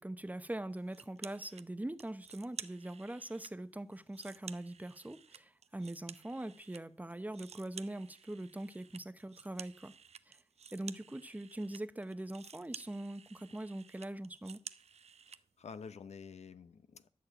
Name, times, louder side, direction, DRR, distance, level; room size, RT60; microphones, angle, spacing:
voice 1, 0.0-9.9 10.3-10.4 10.7-14.6, right 1 dB, 15° right, 0.9 m, -42 dB
sound 1, 0.9-1.7 2.0-3.5 3.9-6.8 7.1-15.4, right 6 dB, 70° right, 0.7 m, -52 dB
voice 2, 15.3-17.1, left 6 dB, 80° left, 0.9 m, -49 dB
12.5 x 6.6 x 8.9 m
wide cardioid pair, 100°, 11 cm